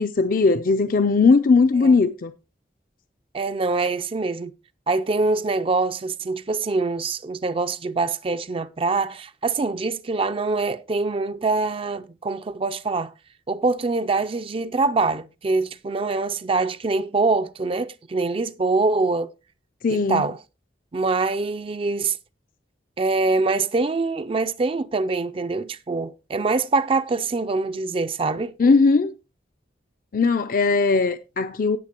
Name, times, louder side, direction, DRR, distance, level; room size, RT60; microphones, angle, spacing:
voice 1, 0.0-2.3 19.8-20.3 28.6-29.1 30.1-31.8, left 4 dB, 50° left, 0.5 m, -19 dB
voice 2, 3.3-4.5 4.9-13.1 13.5-19.3 19.9-20.4 20.9-22.2 23.0-28.5, right 3 dB, 30° right, 0.4 m, -24 dB
18.0 x 6.7 x 2.9 m
head